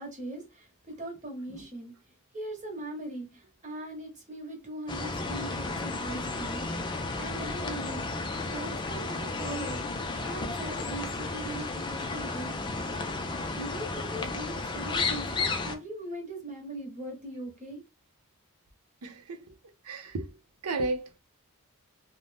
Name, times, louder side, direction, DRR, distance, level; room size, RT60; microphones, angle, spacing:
voice 1, 0.0-8.0 8.5-13.0 13.5-17.8, right 1 dB, 35° right, 1.1 m, -40 dB
sound 1, 4.9-15.8, left 3 dB, 20° left, 0.4 m, -33 dB
voice 2, 19.0-19.5 19.8-20.4 20.6-21.2, right 2 dB, 85° right, 0.6 m, -34 dB
2.6 x 2.1 x 3.3 m
head